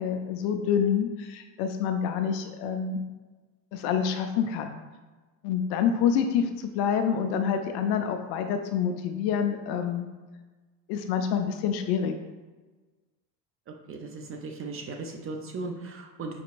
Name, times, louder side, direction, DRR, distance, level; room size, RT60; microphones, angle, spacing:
voice 1, 0.0-3.0 3.7-4.8 5.4-10.1 10.9-12.1, left 7 dB, 55° left, 7 dB, 0.5 m, -27 dB
voice 2, 13.9-16.4, right 3 dB, 30° right, 3 dB, 0.5 m, -37 dB
5.3 x 2.8 x 2.5 m, 1.3 s
hypercardioid pair, 75°, 50 cm